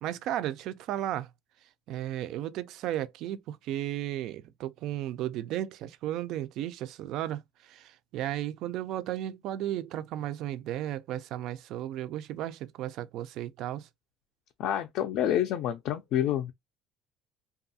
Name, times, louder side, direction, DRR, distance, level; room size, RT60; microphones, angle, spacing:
voice 1, 0.0-1.3 1.9-13.9, right 12 dB, 60° right, 0.3 m, -34 dB
voice 2, 14.6-16.5, left 11 dB, 55° left, 0.3 m, -28 dB
2.6 x 2.3 x 2.6 m
cardioid pair, 160°, 0 cm